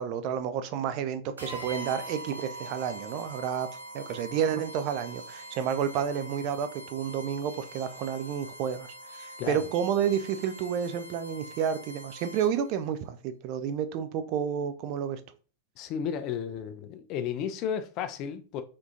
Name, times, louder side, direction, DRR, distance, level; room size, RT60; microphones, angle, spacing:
voice 1, 0.0-3.7 3.9-15.2, right 8 dB, 40° right, 0.3 m, -30 dB
sound 1, 1.4-12.7, right 1 dB, 85° right, 0.6 m, -44 dB
voice 2, 15.8-18.6, left 8 dB, 40° left, 0.3 m, -33 dB
3.6 x 2.4 x 2.7 m
figure-of-eight pair, 90°, 0 cm